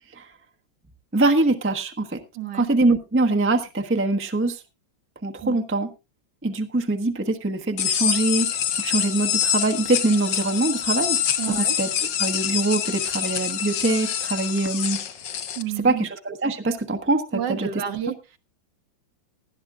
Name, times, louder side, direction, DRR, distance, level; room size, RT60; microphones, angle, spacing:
voice 1, 1.1-2.2 2.5-4.6 5.2-5.9 6.4-11.2 11.5-11.9 12.2-15.0 15.8-17.8, right 2 dB, 10° right, 0.7 m, -23 dB
voice 2, 2.3-2.7 5.4-5.6 11.4-11.8 15.6-16.0 17.3-18.4, right 10 dB, 65° right, 1.7 m, -30 dB
sound 1, 7.8-15.6, left 9 dB, 70° left, 1.7 m, -26 dB
19.5 x 11.5 x 2.4 m
omnidirectional pair, 2.1 m